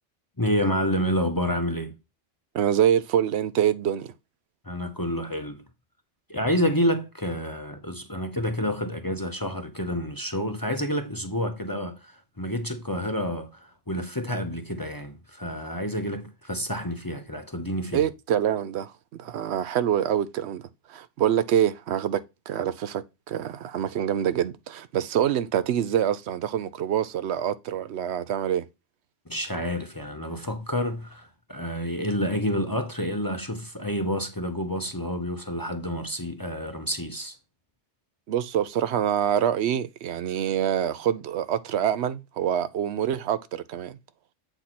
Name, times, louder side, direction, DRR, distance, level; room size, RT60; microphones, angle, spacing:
voice 1, 0.4-1.9 4.6-5.6 6.3-18.0 29.3-37.3, equal, 20° left, 0.7 m, -29 dB
voice 2, 2.5-4.1 17.9-20.6 20.9-28.6 38.3-44.0, right 10 dB, 65° right, 0.8 m, -26 dB
8.0 x 4.4 x 4.2 m
omnidirectional pair, 1.3 m